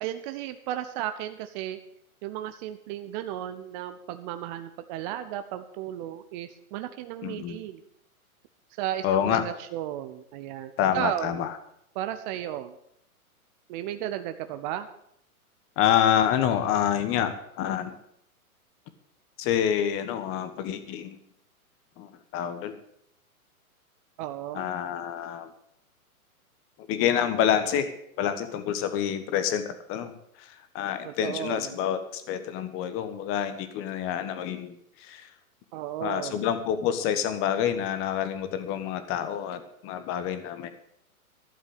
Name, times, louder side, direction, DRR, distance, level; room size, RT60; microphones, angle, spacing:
voice 1, 0.0-1.8 2.2-7.8 8.8-11.5 12.0-12.7 13.7-14.9 24.2-24.7 31.0-31.8 35.7-36.5, right 12 dB, 30° right, 9 dB, 0.7 m, -34 dB
voice 2, 7.2-7.6 9.0-9.4 10.8-11.5 15.8-17.9 19.4-21.2 22.0-22.8 24.5-25.5 26.9-27.9 28.2-30.1 30.4-35.3 36.0-40.7, left 9 dB, 30° left, 10 dB, 1.3 m, -27 dB
12.0 x 7.3 x 8.2 m, 0.73 s
hypercardioid pair, 125°, 44 cm